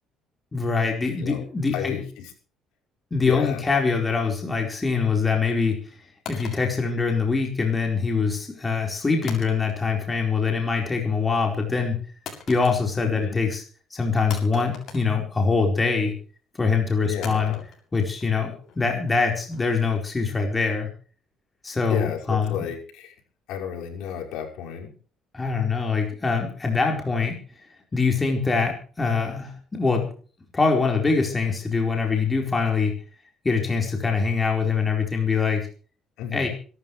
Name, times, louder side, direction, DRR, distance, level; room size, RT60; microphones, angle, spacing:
voice 1, 0.5-2.0 3.1-5.9 6.3-12.0 12.5-13.6 13.9-16.1 16.6-17.5 17.9-20.9 21.6-22.6 25.3-27.4 27.9-30.1 30.5-32.9 33.4-35.7 36.3-36.5, left 4 dB, 20° left, 2 dB, 4.5 m, -24 dB
voice 2, 1.7-2.3 3.2-3.6 13.0-13.4 17.0-17.6 21.8-23.1 23.5-24.9 36.2-36.5, left 9 dB, 85° left, 1 dB, 5.7 m, -32 dB
sound 1, 6.2-7.6 9.2-10.1 10.4-10.8 12.2-13.2 13.5-13.6 14.3-15.8 17.2-20.2, left 7 dB, 55° left, 7.3 m, -43 dB
26.0 x 13.0 x 3.3 m, 0.40 s
cardioid pair, 130°, 0 cm